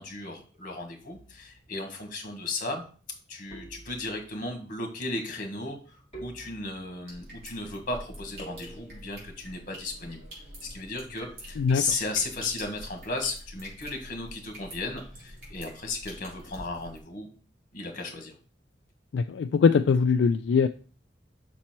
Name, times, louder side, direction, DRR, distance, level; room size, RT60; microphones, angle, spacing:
voice 1, 0.0-2.8 3.3-10.2 10.6-17.3 17.7-18.3, left 3 dB, 50° left, 4 dB, 1.7 m, -35 dB
sound 1, 1.1-1.7 3.5-4.4 6.1-7.1 8.4-9.1, right 2 dB, 35° left, 2.3 m, -47 dB
sound 2, 7.1-17.0, equal, 55° right, 3.8 m, -46 dB
voice 2, 19.1-20.7, left 5 dB, 80° left, 8 dB, 0.3 m, -22 dB
6.1 x 4.3 x 4.5 m, 0.39 s
head